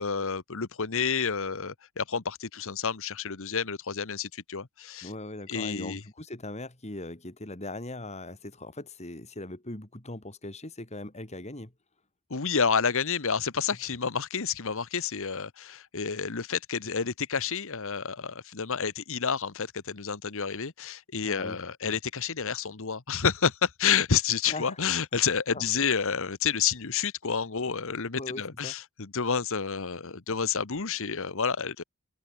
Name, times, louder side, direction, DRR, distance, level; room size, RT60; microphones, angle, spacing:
voice 1, 0.0-5.1 5.5-6.0 12.3-31.8, left 6 dB, 65° left, 1.2 m, -29 dB
voice 2, 5.0-11.7 21.2-21.6 24.5-24.8 25.5-25.7 28.2-28.7, left 2 dB, 30° left, 3.0 m, -40 dB
open air
head